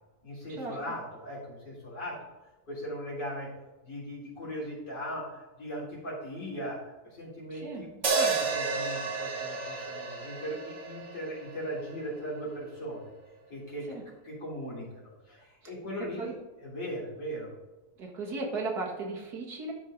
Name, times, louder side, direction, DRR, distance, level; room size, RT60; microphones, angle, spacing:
voice 1, 0.2-2.2 2.7-3.5 3.8-6.8 7.0-13.1 13.5-14.0 14.2-16.3 16.6-17.5, equal, 85° left, -6 dB, 4.0 m, -38 dB
voice 2, 7.5-7.9 8.1-8.3 13.9-14.0 16.2-16.4 18.0-19.7, right 3 dB, 70° right, -1 dB, 2.2 m, -36 dB
sound 1, 8.0-12.3, right 4 dB, 50° right, 1.4 m, -32 dB
12.5 x 4.6 x 3.8 m, 1.1 s
omnidirectional pair, 1.8 m